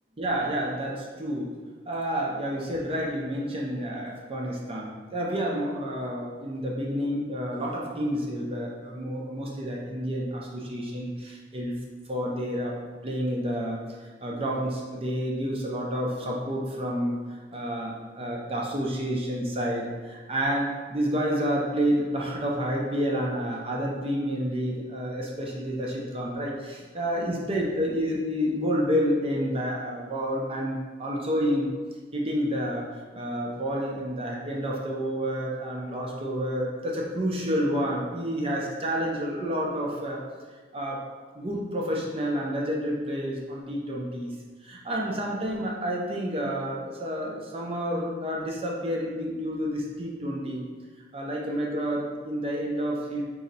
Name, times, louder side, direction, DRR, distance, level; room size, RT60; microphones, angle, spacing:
voice 1, 0.2-1.5 1.9-11.8 12.1-12.8 13.0-13.8 14.2-17.2 17.5-31.7 32.1-32.9 33.1-40.2 40.7-41.0 41.3-44.3 44.6-50.6 51.1-53.2, equal, 30° right, -2 dB, 0.6 m, -29 dB
4.1 x 2.8 x 3.9 m, 1.4 s
head